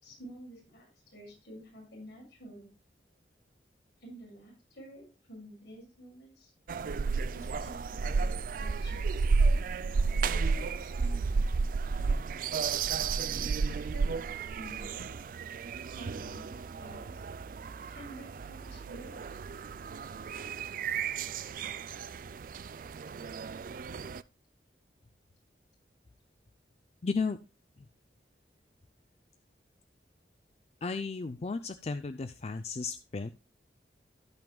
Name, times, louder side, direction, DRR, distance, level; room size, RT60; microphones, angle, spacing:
voice 1, 0.0-2.7 4.0-6.5 7.3-9.2 10.2-11.4 13.3-14.1 14.5-15.3 15.9-17.2 17.9-19.3, right 1 dB, 70° left, -2 dB, 6.2 m, -50 dB
sound 1, 6.7-24.2, right 4 dB, 50° right, 0.3 m, -32 dB
voice 2, 27.0-27.4 30.8-33.3, left 4 dB, 35° left, 10 dB, 0.4 m, -34 dB
17.0 x 5.9 x 2.2 m, 0.29 s
head